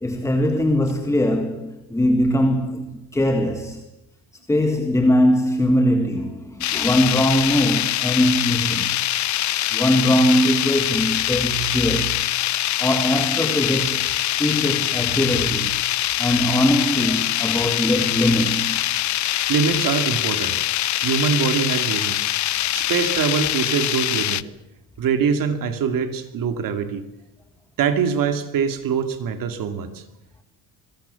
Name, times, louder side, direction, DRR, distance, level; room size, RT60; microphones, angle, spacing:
voice 1, 0.0-3.9 4.5-8.9 9.7-12.2 12.8-14.1 14.4-15.7 16.2-18.8, left 1 dB, 5° left, 1.8 m, -21 dB
sound 1, 6.6-24.4, left 13 dB, 45° left, 0.8 m, -23 dB
voice 2, 19.5-20.6 21.0-22.3 22.7-24.5 25.0-27.0 27.8-30.0, right 6 dB, 55° right, 2.6 m, -23 dB
26.5 x 22.5 x 7.1 m
cardioid pair, 130°, 40 cm